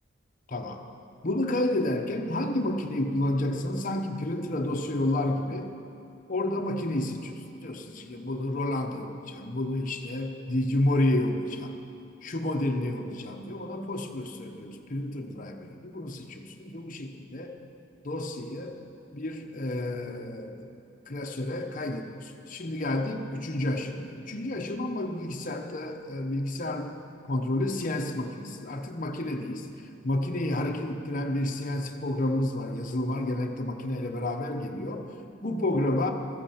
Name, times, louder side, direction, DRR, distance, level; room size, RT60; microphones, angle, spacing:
voice 1, 0.5-0.8 1.2-5.7 6.3-11.7 12.2-17.6 18.0-18.8 19.1-20.7 21.1-27.0 27.3-29.7 30.0-35.1 35.4-36.1, left 1 dB, 45° left, 3 dB, 1.0 m, -30 dB
14.0 x 8.9 x 7.2 m, 2.8 s
head